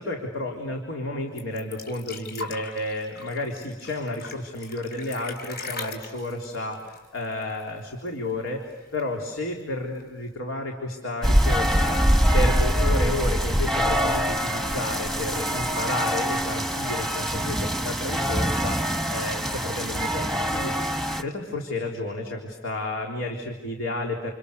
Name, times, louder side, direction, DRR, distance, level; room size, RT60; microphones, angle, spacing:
voice 1, 0.0-12.0 12.3-20.7 21.2-24.3, left 2 dB, 90° left, 0 dB, 3.7 m, -31 dB
sound 1, 1.4-7.8 8.1-8.2 8.5-9.2 10.0-10.1, left 2 dB, 50° left, 4.6 m, -39 dB
sound 2, 11.2-21.2, equal, ahead, 1.2 m, -24 dB
30.0 x 29.0 x 6.8 m, 1.2 s
head